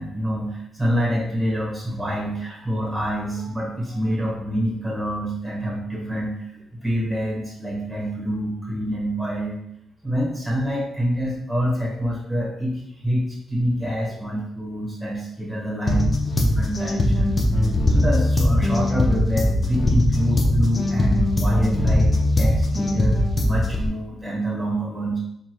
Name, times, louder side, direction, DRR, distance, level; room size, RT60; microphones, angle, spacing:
voice 1, 0.0-6.3 6.8-9.6 10.0-13.2 13.5-17.4 17.9-25.2, equal, 5° right, -3 dB, 1.4 m, -26 dB
sound 1, 15.9-23.9, left 1 dB, 25° left, 0.6 m, -20 dB
3.5 x 2.6 x 4.6 m, 0.78 s
cardioid pair, 125°, 0 cm